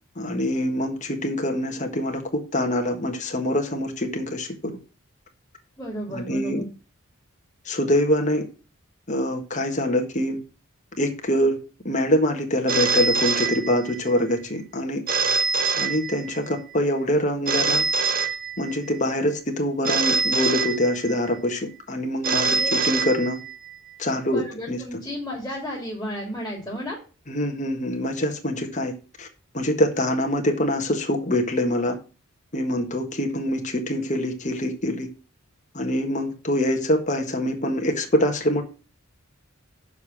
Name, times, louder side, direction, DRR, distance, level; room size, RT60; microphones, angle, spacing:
voice 1, 0.2-4.7 6.1-6.6 7.6-8.4 9.1-10.4 11.0-11.6 11.8-15.0 15.7-17.8 18.6-22.6 22.8-23.4 24.0-24.8 27.3-28.9 29.2-29.3 29.5-32.0 32.5-35.1 35.7-38.6, left 1 dB, 35° left, 1.6 m, -24 dB
voice 2, 5.8-6.7 22.4-22.7 24.3-27.0, equal, 10° left, 2.8 m, -33 dB
Telephone, 12.7-14.2 15.1-16.6 17.5-19.0 19.8-21.3 22.2-23.7, right 4 dB, 40° right, 0.8 m, -24 dB
7.0 x 5.1 x 7.2 m
head